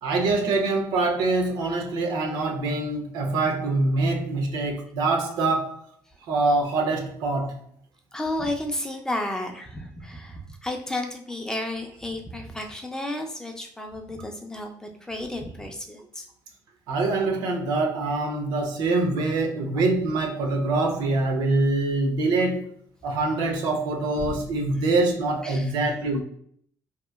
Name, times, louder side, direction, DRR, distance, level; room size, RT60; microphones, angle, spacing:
voice 1, 0.0-5.8 6.3-7.6 16.9-22.7 23.0-26.2, right 3 dB, 85° right, 0.6 m, -24 dB
voice 2, 8.1-16.3 25.4-25.7, left 1 dB, 10° left, 0.3 m, -32 dB
2.8 x 2.4 x 2.3 m
cardioid pair, 145°, 7 cm